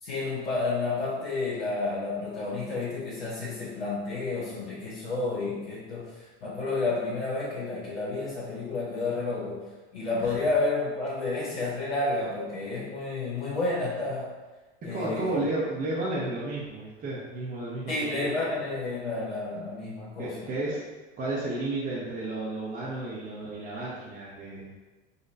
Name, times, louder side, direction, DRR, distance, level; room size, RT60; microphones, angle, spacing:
voice 1, 0.0-9.6 9.9-14.3 14.8-15.4 17.9-20.4, left 3 dB, 60° left, -9 dB, 1.2 m, -30 dB
voice 2, 14.8-17.9 18.3-18.4 20.2-20.9 21.2-24.7, right 2 dB, 25° right, -7 dB, 0.8 m, -32 dB
4.0 x 3.0 x 2.6 m, 1.2 s
figure-of-eight pair, 75°, 33 cm